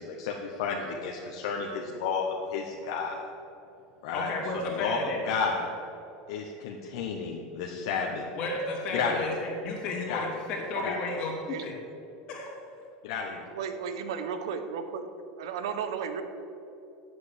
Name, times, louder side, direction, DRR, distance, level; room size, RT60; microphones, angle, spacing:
voice 1, 0.0-3.3 4.0-4.3 4.6-5.0 5.2-5.7 6.3-8.2 8.9-9.3 10.1-10.2 10.8-11.0 13.0-13.4, left 5 dB, 75° left, 0 dB, 1.1 m, -32 dB
voice 2, 4.1-5.2 8.4-11.7 12.3-12.5, left 2 dB, 40° left, -1 dB, 2.6 m, -33 dB
voice 3, 13.5-15.1 15.4-16.2, right 6 dB, 90° right, 8 dB, 1.0 m, -34 dB
8.5 x 7.8 x 8.1 m, 2.8 s
supercardioid pair, 155°, 3 cm